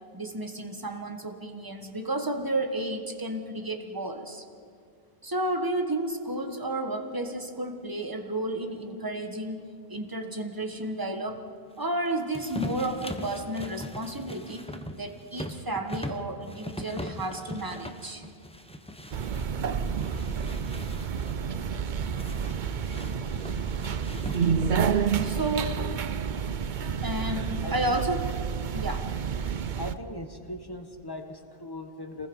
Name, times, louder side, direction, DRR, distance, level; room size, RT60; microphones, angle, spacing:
voice 1, 0.1-4.4 5.2-11.4 11.8-14.7 15.0-18.2 25.2-26.1 27.0-28.2 28.7-29.1, right 1 dB, 20° right, 5 dB, 1.5 m, -32 dB
sound 1, 12.3-19.5 19.8-21.4 22.2-24.8, equal, 5° left, 0.9 m, -40 dB
sound 2, 19.1-29.9, right 6 dB, 55° right, 0.8 m, -29 dB
voice 2, 27.6-28.0 29.8-32.3, left 1 dB, 20° left, 5 dB, 1.5 m, -39 dB
27.0 x 20.0 x 5.4 m, 2.3 s
omnidirectional pair, 1.1 m